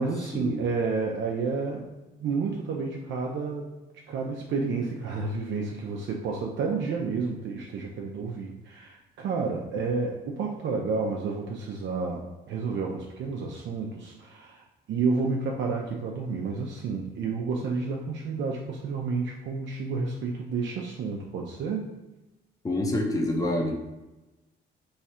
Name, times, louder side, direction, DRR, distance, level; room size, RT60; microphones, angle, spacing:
voice 1, 0.0-1.9 2.2-3.7 4.1-21.9, right 4 dB, 65° right, 0 dB, 0.5 m, -30 dB
voice 2, 22.6-23.7, left 1 dB, 15° left, 0 dB, 0.7 m, -26 dB
3.2 x 2.4 x 4.2 m, 1.0 s
cardioid pair, 90°, 20 cm